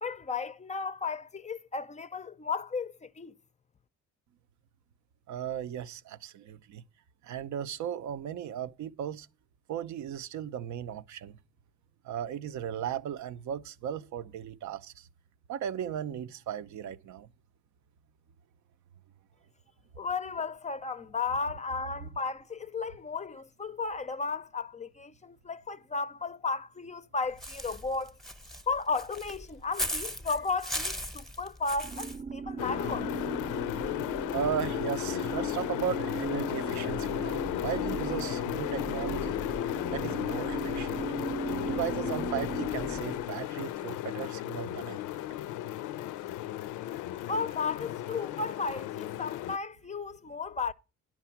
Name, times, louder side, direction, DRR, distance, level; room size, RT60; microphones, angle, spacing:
voice 1, 0.0-3.3 20.0-28.2 28.7-33.1 47.3-50.7, left 4 dB, 25° left, 0.5 m, -34 dB
voice 2, 5.3-6.8 7.2-9.3 9.7-11.4 12.0-15.1 15.5-17.3 21.3-21.4 22.0-22.1 34.3-39.4 39.9-41.0 41.6-45.2, right 9 dB, 70° right, 0.6 m, -36 dB
Walk footsteps / Bird, 27.4-32.2, equal, ahead, 0.8 m, -37 dB
sound 1, 31.8-43.5, right 4 dB, 25° right, 0.5 m, -38 dB
sound 2, 32.6-49.6, left 13 dB, 85° left, 0.5 m, -34 dB
10.5 x 5.9 x 5.8 m
cardioid pair, 90°, 30 cm